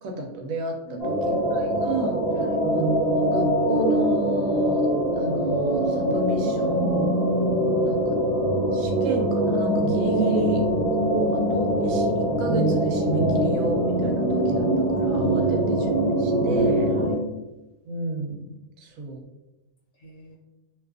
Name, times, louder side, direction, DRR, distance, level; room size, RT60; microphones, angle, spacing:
voice 1, 0.0-2.2 2.7-4.9 5.2-7.1 7.8-8.1 8.7-10.6 11.3-16.9 17.9-18.4 18.8-19.2, right 1 dB, 80° right, 2 dB, 1.0 m, -31 dB
voice 2, 0.8-1.9 2.3-2.6 7.9-8.5 10.2-10.9 15.4-15.7 16.9-17.2 20.0-20.3, equal, 70° left, -8 dB, 1.3 m, -43 dB
sound 1, 1.0-17.1, right 1 dB, 35° left, 0.6 m, -23 dB
2.7 x 2.3 x 2.3 m, 0.96 s
omnidirectional pair, 1.4 m